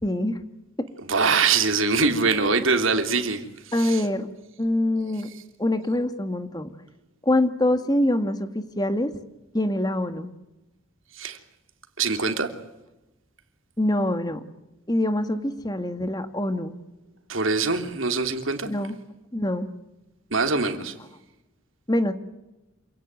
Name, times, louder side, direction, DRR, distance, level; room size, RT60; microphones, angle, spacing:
voice 1, 0.0-0.4 3.7-4.3 4.6-5.3 5.6-6.7 7.2-9.1 9.5-10.3 13.8-14.4 14.9-16.8 18.6-19.0 19.3-19.7 21.9-22.1, left 1 dB, 20° left, 1.7 m, -24 dB
voice 2, 1.0-4.0 11.1-11.4 12.0-12.5 17.3-18.7 20.3-20.9, right 4 dB, 70° right, 3.0 m, -23 dB
27.5 x 17.5 x 9.3 m
head